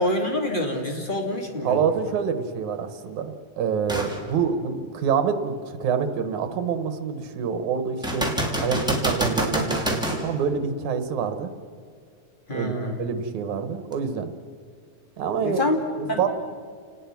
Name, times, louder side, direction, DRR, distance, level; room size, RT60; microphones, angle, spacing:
voice 1, 0.0-1.9 12.5-13.0 15.4-15.8 16.1-16.3, left 1 dB, 20° left, 2 dB, 2.3 m, -26 dB
voice 2, 1.6-8.3 8.6-11.5 12.5-14.3 15.2-15.6 16.0-16.3, right 6 dB, 85° right, 10 dB, 2.8 m, -26 dB
sound 1, 3.9-4.2 4.7-4.8 8.0-10.2 13.9-14.0, equal, ahead, 2.6 m, -26 dB
29.5 x 19.0 x 6.0 m, 2.1 s
omnidirectional pair, 3.3 m